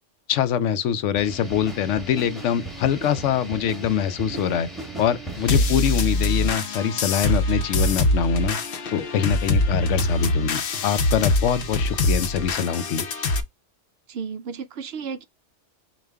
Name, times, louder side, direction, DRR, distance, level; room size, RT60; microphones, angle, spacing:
voice 1, 0.3-4.7 5.0-8.6 8.9-13.0, left 8 dB, 85° left, 0.9 m, -24 dB
sound 1, 1.1-6.2, right 2 dB, ahead, 1.3 m, -37 dB
sound 2, 5.5-13.4, left 2 dB, 55° left, 0.8 m, -23 dB
voice 2, 14.1-15.2, right 6 dB, 65° right, 0.8 m, -33 dB
5.0 x 2.4 x 3.4 m
omnidirectional pair, 1.2 m